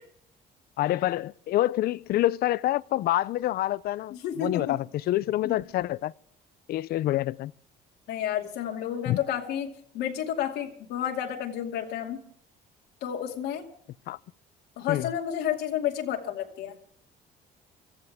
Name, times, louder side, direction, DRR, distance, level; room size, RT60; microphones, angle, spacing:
voice 1, 0.8-6.1 6.7-7.5 9.1-9.2 14.1-14.2 14.9-15.1, left 15 dB, 65° left, 0.5 m, -27 dB
voice 2, 4.1-4.8 5.4-5.6 8.1-12.2 13.0-13.6 14.8-16.8, left 10 dB, 85° left, 2.5 m, -31 dB
24.0 x 14.5 x 3.6 m
cardioid pair, 110°, 17 cm